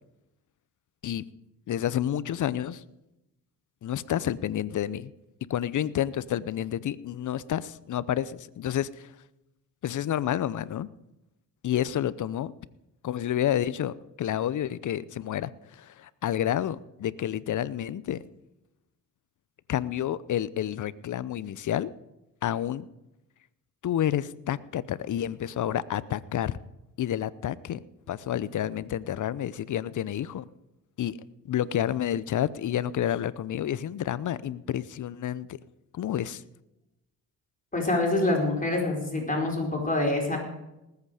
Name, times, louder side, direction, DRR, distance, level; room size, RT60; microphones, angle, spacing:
voice 1, 1.7-2.8 3.8-5.1 5.5-9.1 9.8-10.9 11.6-12.5 13.0-18.2 19.7-21.9 22.4-22.9 23.8-26.6 27.0-27.8 28.1-30.5 31.0-31.2 31.4-35.6 35.9-36.4, left 11 dB, 45° left, 19 dB, 0.7 m, -29 dB
voice 2, 37.7-40.4, left 2 dB, 20° left, 0 dB, 4.7 m, -26 dB
19.5 x 8.3 x 5.0 m, 0.92 s
supercardioid pair, 65°, 41 cm